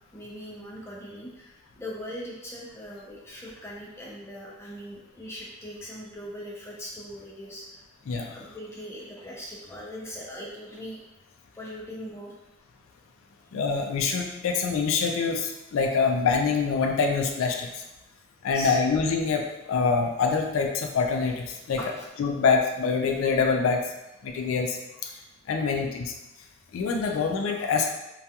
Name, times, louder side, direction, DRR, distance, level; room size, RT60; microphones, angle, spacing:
voice 1, 0.1-7.8 8.3-11.0 11.5-12.3 18.5-18.8 21.8-22.1 25.2-25.3, equal, 15° left, -5 dB, 0.4 m, -40 dB
voice 2, 8.1-8.4 13.5-17.7 18.4-21.8 22.2-23.8 24.2-24.8 25.0-25.1 25.5-26.1 26.7-27.9, left 5 dB, 80° left, 3 dB, 0.3 m, -25 dB
2.3 x 2.3 x 2.7 m, 0.95 s
head